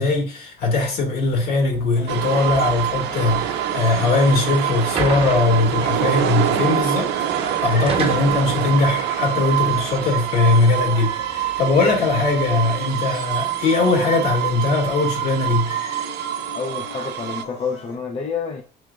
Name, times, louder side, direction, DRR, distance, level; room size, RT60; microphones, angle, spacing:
voice 1, 0.0-15.8, left 3 dB, 65° left, 1.8 m, -20 dB
sound 1, 1.3-12.8, right 5 dB, 35° right, 0.9 m, -35 dB
sound 2, 2.0-17.9, left 3 dB, 85° left, 1.5 m, -41 dB
sound 3, 2.1-17.4, right 11 dB, 80° right, 0.5 m, -25 dB
voice 2, 16.5-18.6, left 5 dB, 35° left, 0.5 m, -28 dB
5.9 x 3.2 x 2.3 m
cardioid pair, 110°, 17 cm